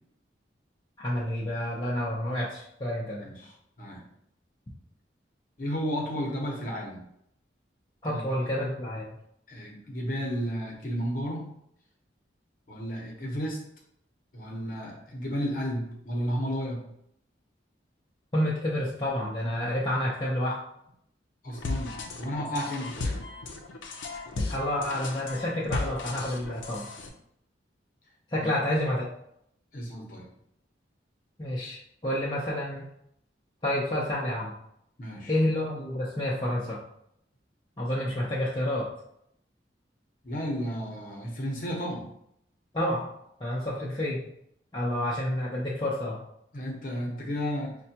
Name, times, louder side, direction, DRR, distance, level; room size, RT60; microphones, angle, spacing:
voice 1, 1.0-3.3 8.0-9.1 18.3-20.6 24.5-26.9 28.3-29.0 31.4-32.9 33.6-34.5 35.3-36.8 37.8-38.9 42.7-43.0 43.4-44.2 44.7-46.2, left 1 dB, 25° left, -6 dB, 0.6 m, -29 dB
voice 2, 3.2-4.0 5.6-7.0 8.0-8.5 9.5-11.5 12.7-13.6 14.3-16.8 21.4-23.2 28.4-28.5 29.7-30.3 35.0-35.3 40.2-42.1 46.5-47.8, equal, 45° left, -2 dB, 0.9 m, -33 dB
sound 1, 21.5-27.1, left 3 dB, 85° left, 0.5 m, -35 dB
5.4 x 2.2 x 2.8 m, 0.73 s
head